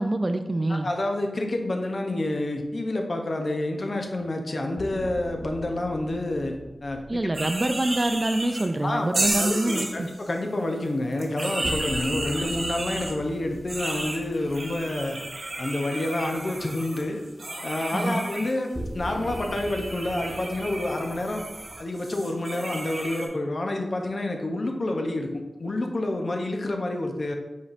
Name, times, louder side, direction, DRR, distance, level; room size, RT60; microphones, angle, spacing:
voice 1, 0.0-0.9 7.1-10.1 17.9-18.2, right 1 dB, 35° right, 8 dB, 0.4 m, -26 dB
voice 2, 0.7-7.2 8.8-15.2 15.6-17.2 17.6-21.4 21.8-27.3, left 1 dB, 60° left, 3 dB, 0.7 m, -28 dB
sound 1, 4.8-8.9 11.6-16.0 16.3-16.4 18.7-21.8, equal, 5° right, 1.0 m, -40 dB
sound 2, 7.3-8.7 9.1-10.3 11.1-13.1 13.7-18.5 19.0-23.3, right 2 dB, 55° right, 0.9 m, -33 dB
5.0 x 4.1 x 2.5 m, 1.1 s
cardioid pair, 50°, 0 cm